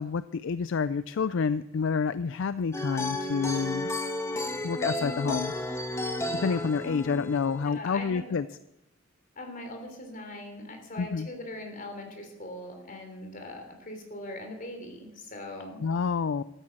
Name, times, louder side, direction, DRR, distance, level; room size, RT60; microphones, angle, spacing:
voice 1, 0.0-3.9 4.6-5.5 6.3-8.5 11.0-11.3 15.8-16.4, left 5 dB, 65° left, 15 dB, 0.4 m, -28 dB
sound 1, 2.7-7.8, left 1 dB, 15° left, 1.3 m, -33 dB
voice 2, 7.6-8.2 9.3-15.8, left 1 dB, 40° left, 4 dB, 3.3 m, -41 dB
13.0 x 10.0 x 7.7 m, 0.87 s
head